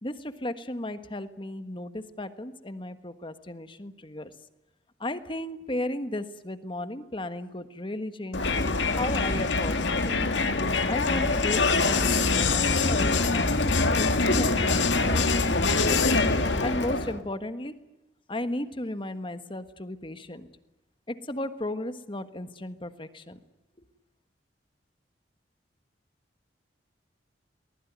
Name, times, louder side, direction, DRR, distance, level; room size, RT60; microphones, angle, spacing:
voice 1, 0.0-4.3 5.0-8.5 9.0-10.2 10.9-13.6 14.0-15.9 16.6-17.7 18.3-20.5 21.1-23.4, left 1 dB, 30° left, 10 dB, 1.5 m, -35 dB
Crowd, 8.3-17.2, left 3 dB, 80° left, 2.1 m, -24 dB
23.5 x 20.0 x 9.5 m, 1.0 s
head